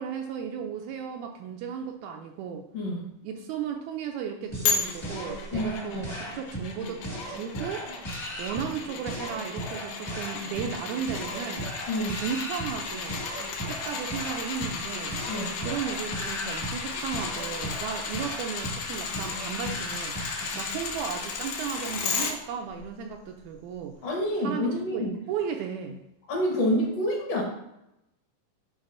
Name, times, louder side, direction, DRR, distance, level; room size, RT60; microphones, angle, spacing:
voice 1, 0.0-2.7 3.2-7.9 8.4-11.7 12.2-13.2 13.6-15.2 15.6-20.2 20.6-24.0 24.4-26.0, right 7 dB, 80° right, 4 dB, 1.8 m, -35 dB
voice 2, 2.7-3.1 5.5-6.1 11.9-12.2 15.3-15.6 24.0-25.1 26.3-27.4, equal, 60° left, -1 dB, 2.1 m, -28 dB
sound 1, 4.5-20.8, equal, 15° left, 0.9 m, -37 dB
sound 2, 4.7-22.3 22.8-22.9, left 5 dB, 85° left, 2.3 m, -34 dB
10.5 x 3.9 x 2.6 m, 0.85 s
omnidirectional pair, 3.6 m